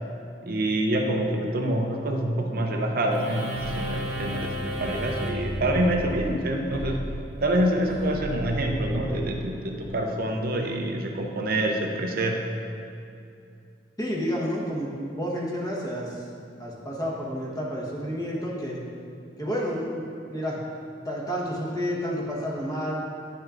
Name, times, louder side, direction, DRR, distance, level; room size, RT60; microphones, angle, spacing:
voice 1, 0.5-7.0 7.4-12.4, right 1 dB, 55° right, 2 dB, 0.6 m, -26 dB
sound 1, 3.1-9.9, equal, 35° right, 1.1 m, -33 dB
voice 2, 14.0-16.1 16.6-18.8 19.4-20.6 21.0-23.0, equal, 20° left, -4 dB, 1.2 m, -30 dB
10.0 x 6.3 x 2.5 m, 2.5 s
head